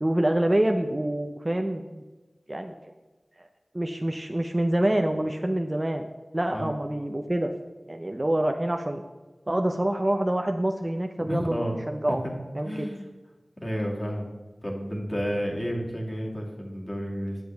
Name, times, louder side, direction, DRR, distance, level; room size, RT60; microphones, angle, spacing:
voice 1, 0.0-2.0 2.5-2.7 3.4-3.5 3.7-6.1 6.3-7.5 7.9-9.0 9.5-12.2 12.5-12.9, right 1 dB, 30° right, 4 dB, 0.6 m, -26 dB
voice 2, 11.2-11.8 12.1-12.2 12.6-13.1 13.6-14.3 14.6-17.4, equal, 25° left, -2 dB, 2.3 m, -31 dB
9.6 x 7.4 x 3.5 m, 1.2 s
wide cardioid pair, 45°, 0 cm